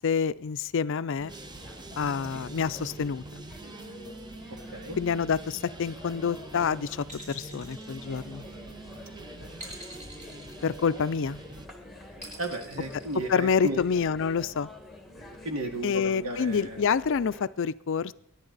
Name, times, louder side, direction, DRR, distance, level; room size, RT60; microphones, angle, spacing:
voice 1, 0.0-1.3 2.0-3.2 5.0-8.4 10.6-11.4 13.3-14.7 15.8-18.1, left 6 dB, 60° left, 15 dB, 0.4 m, -27 dB
sound 1, 1.2-17.5, left 1 dB, ahead, 1.8 m, -47 dB
sound 2, 1.3-11.7, right 2 dB, 20° right, 0.9 m, -46 dB
sound 3, 7.0-8.7 9.6-11.2 12.2-13.8, right 1 dB, 35° right, 6.4 m, -46 dB
voice 2, 12.4-13.8 15.4-16.8, right 1 dB, 70° right, 4 dB, 2.2 m, -34 dB
23.0 x 10.5 x 4.0 m, 0.73 s
head